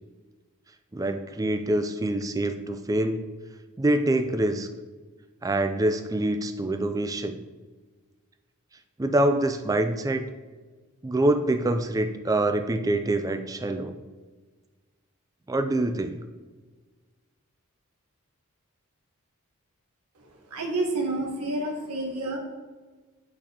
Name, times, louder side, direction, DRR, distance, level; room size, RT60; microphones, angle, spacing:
voice 1, 0.9-3.2 3.8-4.7 5.4-7.4 9.0-10.3 11.0-14.0 15.5-16.2, right 1 dB, 15° right, 7 dB, 0.3 m, -25 dB
voice 2, 20.5-22.4, right 2 dB, 90° right, 1 dB, 1.2 m, -29 dB
8.8 x 4.1 x 2.9 m, 1.3 s
head